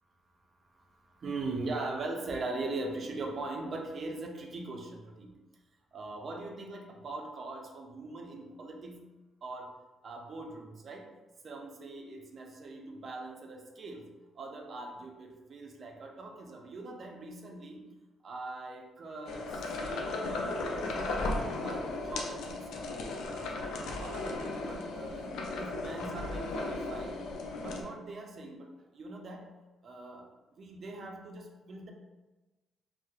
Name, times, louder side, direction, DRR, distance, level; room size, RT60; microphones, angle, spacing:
voice 1, 0.8-5.3 5.9-9.1 9.4-9.7 10.0-11.1 11.4-14.1 14.4-17.9 18.2-21.2 21.6-22.8 23.3-24.3 24.6-29.5 29.8-30.3 30.6-31.9, right 2 dB, 50° right, 2 dB, 0.4 m, -41 dB
sound 1, 19.3-27.8, left 2 dB, 85° left, 0.3 m, -36 dB
2.8 x 2.0 x 2.3 m, 1.1 s
cardioid pair, 90°, 0 cm